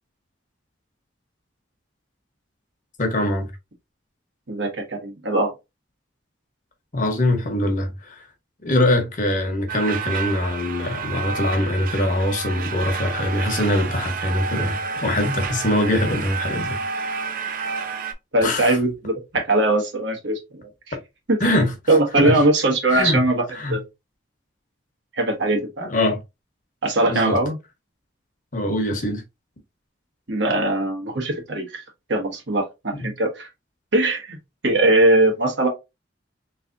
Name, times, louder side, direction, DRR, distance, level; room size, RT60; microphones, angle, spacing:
voice 1, 3.0-3.5 6.9-8.2 8.6-16.8 18.4-18.8 21.4-21.7 22.2-22.4 22.9-23.2 23.5-23.8 25.8-26.2 27.0-27.4 28.5-29.2 32.9-33.1, left 1 dB, 45° left, 1.0 m, -23 dB
voice 2, 4.5-5.5 18.3-20.6 20.9-21.0 21.3-21.4 21.9-23.4 23.7-23.8 25.1-25.9 26.8-27.6 30.3-31.8 32.1-33.5 33.9-34.4 34.6-35.7, right 2 dB, 75° right, 1.3 m, -20 dB
sound 1, 9.7-18.1, right 5 dB, 50° right, 0.5 m, -30 dB
3.5 x 3.3 x 2.6 m
head